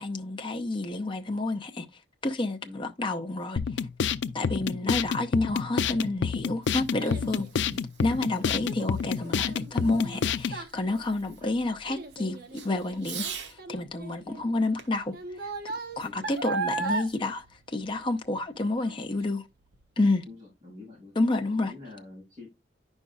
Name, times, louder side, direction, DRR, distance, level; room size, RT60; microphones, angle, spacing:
voice 1, 0.0-1.9 2.2-3.6 4.3-7.5 8.0-13.3 13.7-15.1 16.0-19.4 20.0-20.2 21.2-21.7, left 2 dB, 30° left, 0.7 m, -29 dB
voice 2, 2.6-2.9 4.8-5.1 7.6-7.8 8.3-8.6 11.3-11.5 14.2-14.5 16.0-16.3 20.2-21.1 21.5-22.5, left 3 dB, 30° right, 4.8 m, -46 dB
sound 1, 3.6-10.6, left 6 dB, 90° left, 0.4 m, -28 dB
Child speech kid speaking, 6.0-18.4 18.8-19.2 19.7-19.8, right 3 dB, 60° right, 1.0 m, -37 dB
Fireworks, 6.4-13.6 14.8-16.4, right 7 dB, 80° right, 1.1 m, -46 dB
9.6 x 5.4 x 2.4 m
head